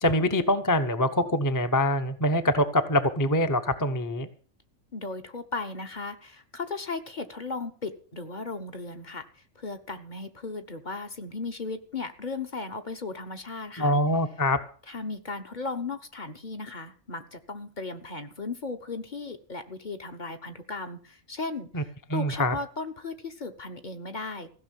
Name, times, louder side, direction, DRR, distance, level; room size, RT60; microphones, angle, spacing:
voice 1, 0.0-4.3 13.8-14.6 21.7-21.8 22.1-22.5, left 1 dB, 15° left, 8 dB, 0.8 m, -24 dB
voice 2, 4.9-9.2 9.5-14.0 14.9-24.5, left 3 dB, 40° left, 7 dB, 1.2 m, -36 dB
15.5 x 6.3 x 9.1 m, 0.43 s
omnidirectional pair, 1.3 m